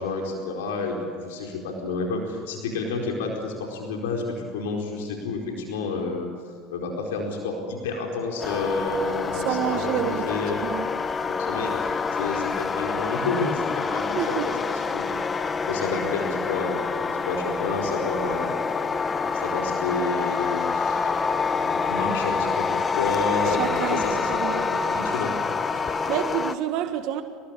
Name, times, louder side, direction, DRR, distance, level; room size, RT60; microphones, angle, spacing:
voice 1, 0.0-6.3 6.7-10.5 11.4-14.4 14.7-15.1 15.6-18.5 19.3-21.1 21.5-24.6 24.9-25.3, left 3 dB, 85° left, 4.6 m, -30 dB
sound 1, 8.4-26.5, left 5 dB, 25° left, 1.3 m, -27 dB
voice 2, 9.3-10.9 14.1-14.5 23.5-24.6 25.8-27.2, right 11 dB, 65° right, 1.6 m, -29 dB
27.5 x 20.0 x 8.9 m
supercardioid pair, 90°, 0 cm